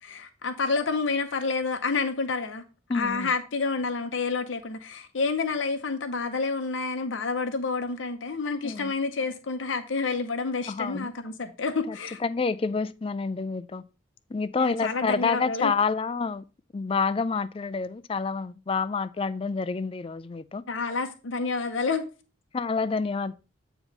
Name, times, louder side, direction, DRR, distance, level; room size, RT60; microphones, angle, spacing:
voice 1, 0.0-2.6 2.9-12.2 14.6-15.7 20.7-22.1, left 4 dB, 75° left, 0.7 m, -29 dB
voice 2, 2.9-3.3 8.6-8.9 10.7-11.1 11.9-12.0 12.2-13.8 14.3-16.4 16.7-20.6 22.5-23.3, left 4 dB, 30° left, 0.3 m, -28 dB
9.0 x 3.0 x 5.2 m
head